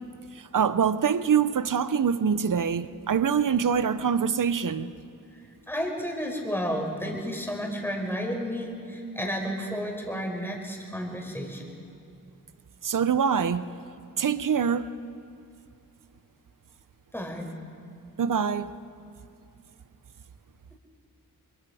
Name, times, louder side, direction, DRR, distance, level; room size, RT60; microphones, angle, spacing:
voice 1, 0.3-4.9 12.8-13.7 14.2-14.9 18.2-18.7, right 7 dB, 60° right, 0.9 m, -24 dB
voice 2, 5.7-11.6 17.1-17.5, equal, 5° left, 5.1 m, -32 dB
23.5 x 22.0 x 5.0 m
cardioid pair, 45°, 36 cm